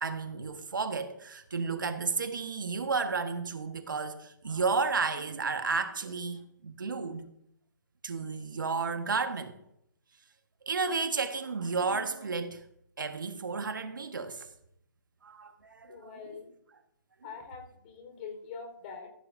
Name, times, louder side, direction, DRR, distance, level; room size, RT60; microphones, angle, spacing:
voice 1, 0.0-7.3 8.0-9.6 10.7-12.6 13.0-14.5 15.2-16.2, right 4 dB, 75° right, 1.6 m, -32 dB
voice 2, 15.8-16.5 17.2-19.1, left 5 dB, 35° left, 4.6 m, -44 dB
15.5 x 14.0 x 2.7 m
hypercardioid pair, 140°, 11 cm